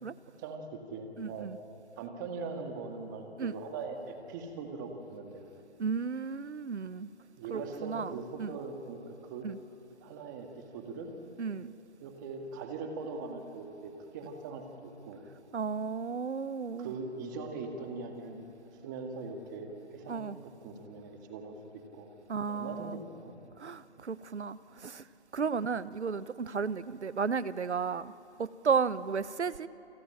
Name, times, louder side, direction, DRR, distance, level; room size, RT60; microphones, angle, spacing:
voice 1, 0.3-1.5 2.0-5.4 7.4-9.5 10.0-11.1 12.0-15.2 16.8-18.4 18.8-22.1 22.5-23.3, right 4 dB, 15° right, 4 dB, 1.9 m, -41 dB
voice 2, 1.2-1.6 3.4-3.5 5.8-7.1 7.5-8.1 8.4-8.5 9.4-9.6 11.4-11.7 15.5-16.9 20.1-20.4 22.3-23.0 23.6-25.0 25.3-28.1 28.4-29.7, right 5 dB, 85° right, 16 dB, 1.0 m, -33 dB
28.5 x 21.5 x 9.0 m, 2.8 s
hypercardioid pair, 160°, 33 cm